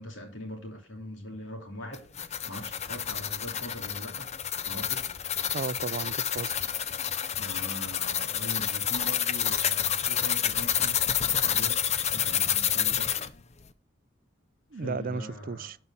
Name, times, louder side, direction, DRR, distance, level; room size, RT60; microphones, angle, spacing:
voice 1, 0.0-2.1 2.4-4.3 4.6-5.1 7.4-11.8 12.1-13.1 14.7-15.7, left 1 dB, 65° left, 3.0 m, -41 dB
sound 1, 1.9-13.3, left 9 dB, 35° left, 0.6 m, -29 dB
voice 2, 5.5-6.7 14.7-15.8, right 4 dB, 45° right, 0.5 m, -34 dB
12.0 x 5.5 x 5.6 m
head